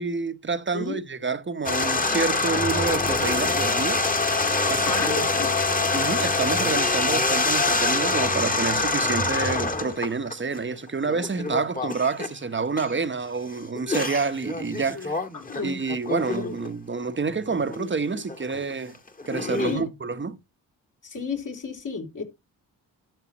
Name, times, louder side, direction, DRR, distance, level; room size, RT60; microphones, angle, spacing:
voice 1, 0.0-4.0 4.7-5.5 5.9-15.2 15.6-19.0 19.3-20.4, right 4 dB, 30° right, 1.1 m, -28 dB
sound 1, 1.7-10.6 11.1-12.3 12.8-12.9 13.8-16.7 17.2-17.9 18.1-19.8, left 3 dB, 20° left, 1.9 m, -25 dB
voice 2, 4.8-5.5 14.9-15.8 16.4-16.6 19.6-19.9 21.0-22.2, left 4 dB, 50° left, 3.4 m, -32 dB
12.5 x 6.5 x 3.1 m
cardioid pair, 65°, 39 cm